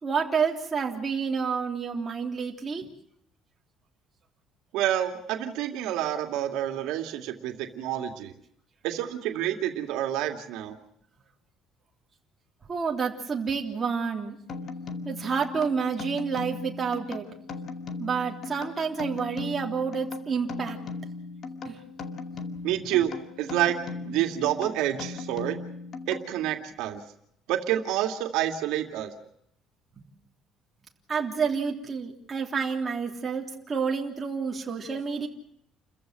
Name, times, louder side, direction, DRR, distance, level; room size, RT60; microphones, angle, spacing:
voice 1, 0.0-2.9 12.7-14.4 15.0-17.3 18.0-20.8 21.6-21.8 31.1-35.3, right 5 dB, 25° right, 1 dB, 3.4 m, -29 dB
voice 2, 4.7-8.3 8.8-10.8 22.6-23.8 24.1-25.6 26.1-27.0 27.5-29.1, right 12 dB, 85° right, 5 dB, 2.4 m, -28 dB
sound 1, 14.5-26.7, left 4 dB, 40° left, 2.3 m, -38 dB
29.5 x 15.0 x 7.6 m, 0.72 s
cardioid pair, 160°, 0 cm